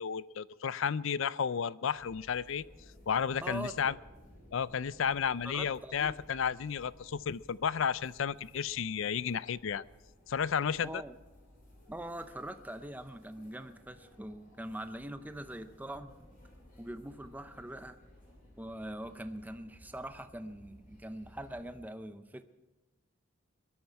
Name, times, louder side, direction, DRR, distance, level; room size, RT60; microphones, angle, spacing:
voice 1, 0.0-2.6 3.1-3.9 4.5-9.8 10.3-11.0, left 7 dB, 65° left, 19 dB, 0.4 m, -32 dB
sound 1, 1.9-21.8, left 1 dB, 40° left, 6.1 m, -58 dB
voice 2, 3.4-4.0 5.4-6.2 10.8-11.2 11.9-16.3 16.8-18.0 18.6-22.4, right 1 dB, 10° right, 10 dB, 0.6 m, -43 dB
21.5 x 13.0 x 4.7 m, 1.1 s
head